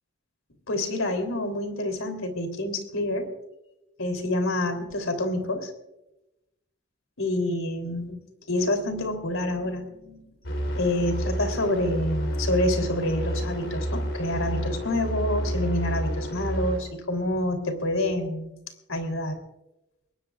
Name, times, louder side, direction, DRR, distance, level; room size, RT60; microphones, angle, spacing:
voice 1, 0.7-3.3 4.0-5.7 7.2-10.3 10.7-18.5 18.9-19.4, left 1 dB, 85° left, 6 dB, 3.3 m, -27 dB
sound 1, 10.4-16.8, equal, 60° left, 3.5 m, -29 dB
22.0 x 20.0 x 2.4 m, 0.92 s
head